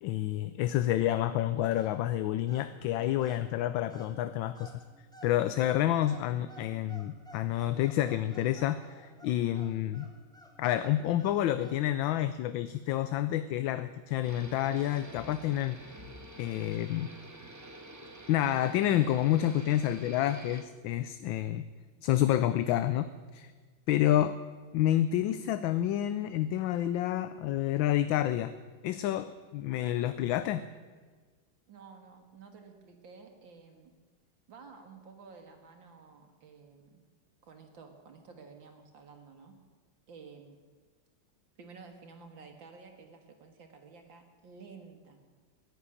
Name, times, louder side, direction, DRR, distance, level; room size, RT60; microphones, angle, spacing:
voice 1, 0.0-4.7 5.2-10.1 10.6-15.8 16.4-17.1 18.3-21.6 22.0-23.5 23.9-24.4 24.7-28.5 28.8-30.6, left 12 dB, 80° left, 13 dB, 1.3 m, -29 dB
sound 1, 1.7-11.9, right 1 dB, ahead, 1.6 m, -55 dB
sound 2, 14.2-20.7, right 1 dB, 15° right, 0.6 m, -48 dB
voice 2, 31.7-34.0 34.5-37.0 37.4-39.6 40.1-40.6 41.6-45.2, right 5 dB, 70° right, 4 dB, 2.2 m, -52 dB
14.5 x 10.0 x 9.8 m, 1.5 s
omnidirectional pair, 2.2 m